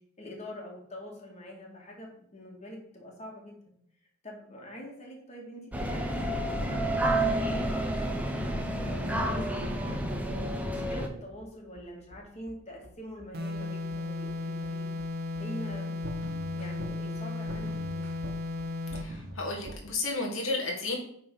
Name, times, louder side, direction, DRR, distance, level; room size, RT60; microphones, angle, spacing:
voice 1, 0.2-3.5 4.2-6.4 6.7-8.3 8.7-10.3 10.7-14.9 15.4-15.9 16.5-18.1, equal, 35° left, -1 dB, 2.2 m, -44 dB
sound 1, 5.7-11.1, right 1 dB, 5° right, 0.9 m, -30 dB
sound 2, 7.4-19.8, equal, 70° right, 1.5 m, -44 dB
sound 3, 13.3-19.2, left 3 dB, 50° right, 1.1 m, -35 dB
voice 2, 19.0-21.0, left 3 dB, 85° left, 0 dB, 1.8 m, -32 dB
8.9 x 4.3 x 5.5 m, 0.69 s
head